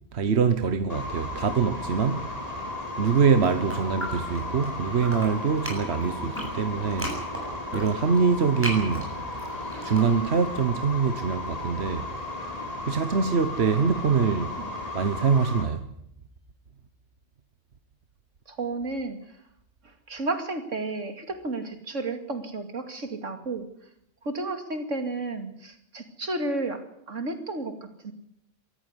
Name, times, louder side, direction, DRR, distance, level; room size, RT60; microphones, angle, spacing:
voice 1, 0.1-2.4 3.0-7.2 7.7-9.1 9.8-12.1 12.9-14.5 14.9-15.8, right 5 dB, 60° right, 1.3 m, -24 dB
sound 1, 0.9-15.6, left 2 dB, 30° left, 4.7 m, -35 dB
sound 2, 3.0-4.7 5.0-10.6, equal, 10° right, 7.6 m, -36 dB
voice 2, 18.5-19.2 19.8-23.7 24.2-26.8 27.1-27.7 28.0-28.1, right 2 dB, 80° right, 2.8 m, -32 dB
23.5 x 14.5 x 9.8 m
omnidirectional pair, 1.3 m